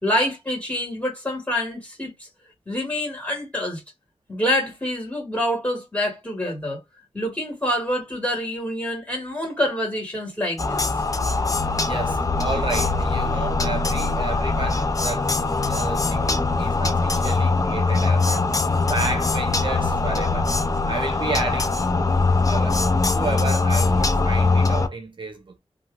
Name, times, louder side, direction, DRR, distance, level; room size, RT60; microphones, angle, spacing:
voice 1, 0.0-2.3 2.6-3.8 4.3-6.8 7.1-10.9, left 1 dB, 15° left, 1.8 m, -26 dB
sound 1, 10.6-24.9, left 3 dB, 30° left, 0.4 m, -22 dB
voice 2, 11.7-18.5 18.9-20.5 20.9-22.2 22.5-22.8 23.1-25.6, right 3 dB, 45° right, 0.7 m, -32 dB
3.0 x 2.4 x 2.3 m
wide cardioid pair, 85°, 11 cm